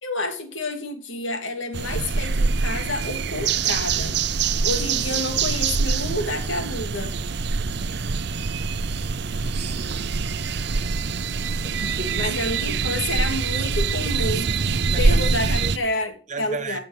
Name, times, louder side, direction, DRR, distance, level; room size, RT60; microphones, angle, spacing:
voice 1, 0.0-4.2 4.6-7.1 12.1-14.5 15.0-16.8, left 1 dB, 80° left, 2.9 m, -29 dB
sound 1, 1.7-15.8, right 4 dB, 60° right, 0.7 m, -24 dB
voice 2, 9.4-10.2 11.6-12.3 14.3-14.6 14.9-15.7 16.3-16.8, right 4 dB, 40° right, 1.3 m, -36 dB
15.5 x 6.2 x 8.0 m
head